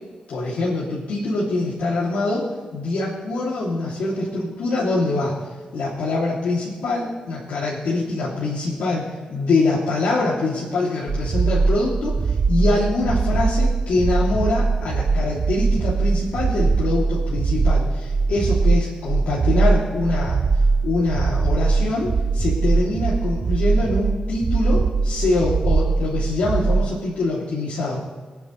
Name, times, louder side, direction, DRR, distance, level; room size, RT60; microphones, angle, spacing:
voice 1, 0.3-5.3 5.7-20.4 20.8-28.0, left 2 dB, 85° left, -7 dB, 2.8 m, -24 dB
sound 1, 11.1-26.9, right 4 dB, 45° right, 0.4 m, -21 dB
25.5 x 9.5 x 3.3 m, 1.5 s
wide cardioid pair, 125°, 2 cm